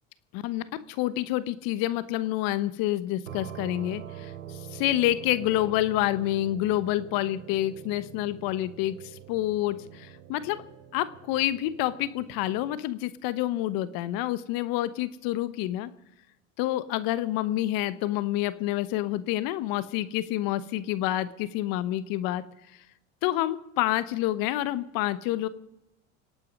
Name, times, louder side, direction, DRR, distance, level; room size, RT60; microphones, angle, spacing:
voice 1, 0.3-10.6 10.9-15.9 16.6-22.4 23.2-25.5, left 14 dB, 60° left, 14 dB, 1.2 m, -28 dB
sound 1, 3.3-12.8, right 9 dB, 85° right, 1.1 m, -45 dB
26.0 x 8.8 x 5.4 m, 0.88 s
hypercardioid pair, 75°, 38 cm